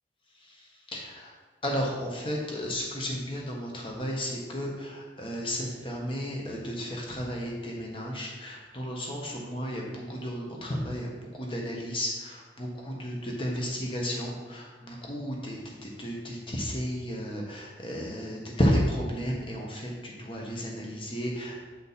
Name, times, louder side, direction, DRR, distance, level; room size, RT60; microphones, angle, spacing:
voice 1, 0.4-1.3 1.6-21.6, equal, 30° left, -1 dB, 1.4 m, -33 dB
8.4 x 5.1 x 4.2 m, 1.4 s
head